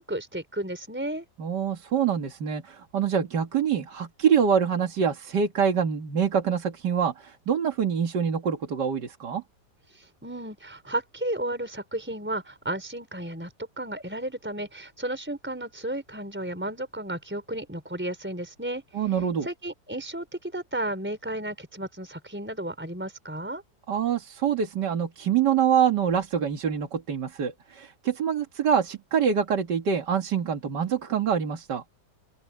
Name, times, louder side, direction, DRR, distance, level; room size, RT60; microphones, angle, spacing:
voice 1, 0.0-1.2 9.9-19.0 19.4-23.6, right 1 dB, 5° right, 4.7 m, -33 dB
voice 2, 1.4-9.4 18.9-19.5 23.9-31.8, right 7 dB, 70° right, 2.4 m, -25 dB
open air
omnidirectional pair, 1.9 m